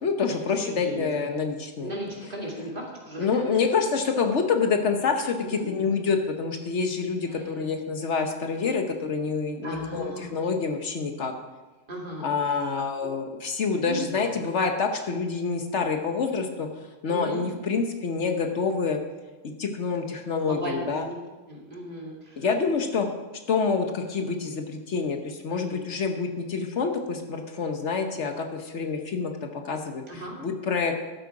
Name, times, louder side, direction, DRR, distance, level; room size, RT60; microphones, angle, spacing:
voice 1, 0.0-1.9 3.2-11.3 12.2-16.7 17.0-19.0 19.6-21.1 22.4-23.1 23.5-30.9, left 5 dB, 65° left, 5 dB, 1.2 m, -27 dB
voice 2, 0.6-1.2 1.8-3.6 5.4-5.7 7.2-7.7 9.6-10.4 11.9-12.3 13.0-13.1 13.8-14.3 17.1-17.5 20.4-21.2 21.5-22.4 25.5-25.8 30.1-30.4, right 1 dB, 40° right, -2 dB, 2.4 m, -36 dB
12.0 x 7.8 x 4.8 m, 1.2 s
omnidirectional pair, 1.3 m